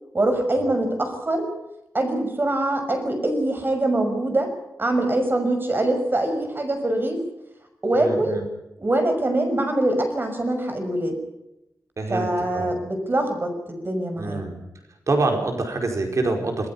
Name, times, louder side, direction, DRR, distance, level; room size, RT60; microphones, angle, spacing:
voice 1, 0.1-1.5 1.9-4.5 4.8-7.2 7.8-8.4 8.8-11.2 12.1-14.5, right 1 dB, 35° right, 6 dB, 6.1 m, -23 dB
voice 2, 7.9-8.4 12.0-12.7 14.2-14.6 15.1-16.7, right 2 dB, 55° right, 3 dB, 5.0 m, -26 dB
27.5 x 20.0 x 5.5 m, 0.91 s
wide cardioid pair, 100°, 6 cm